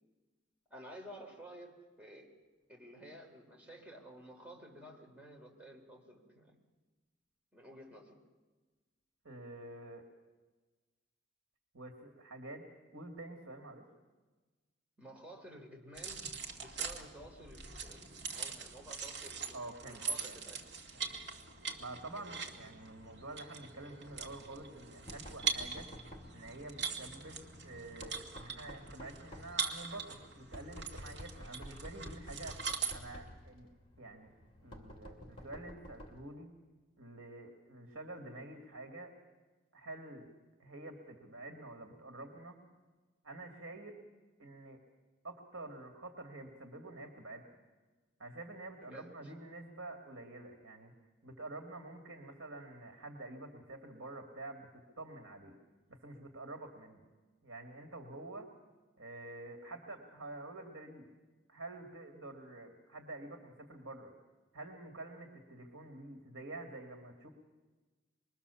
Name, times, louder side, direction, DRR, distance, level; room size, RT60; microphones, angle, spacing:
voice 1, 0.7-2.3 2.7-6.6 7.5-8.2 15.0-16.2 16.6-20.6 48.8-49.3, right 1 dB, 5° right, -1 dB, 4.0 m, -53 dB
voice 2, 9.2-10.0 11.7-12.6 12.9-13.9 19.5-20.4 20.9-21.1 21.8-25.9 26.3-32.6 32.9-33.7 34.0-34.3 34.6-36.5 37.0-39.1 39.7-40.3 40.6-42.6 43.2-44.0 44.4-44.8 45.2-47.4 48.2-50.9 51.2-55.6 55.9-57.0 57.4-58.5 59.0-61.1 61.5-64.1 64.5-67.3, right 2 dB, 75° right, 2 dB, 2.5 m, -48 dB
sound 1, 16.0-32.9, right 5 dB, 55° right, 2.4 m, -42 dB
Knock, 24.1-36.3, equal, 25° left, 2.5 m, -52 dB
25.5 x 22.5 x 7.1 m, 1.3 s
head